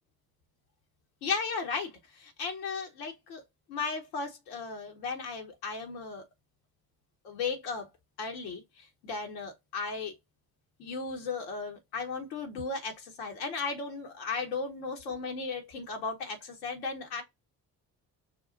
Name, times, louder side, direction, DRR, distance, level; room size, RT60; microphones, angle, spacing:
voice 1, 1.2-1.9 2.2-3.4 3.7-6.2 7.2-7.9 8.2-8.6 9.0-10.1 10.8-17.2, left 4 dB, 85° left, 1.1 m, -35 dB
5.5 x 2.4 x 2.5 m
hypercardioid pair, 45°, 48 cm